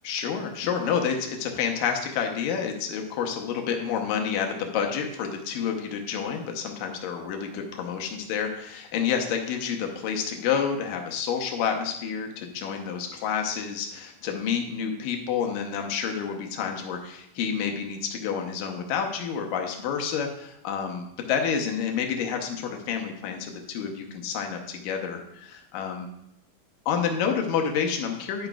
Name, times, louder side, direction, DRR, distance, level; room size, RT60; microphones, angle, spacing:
voice 1, 0.0-26.1 26.9-28.5, left 7 dB, 85° left, 3 dB, 2.6 m, -29 dB
10.5 x 9.0 x 2.3 m, 0.81 s
omnidirectional pair, 3.8 m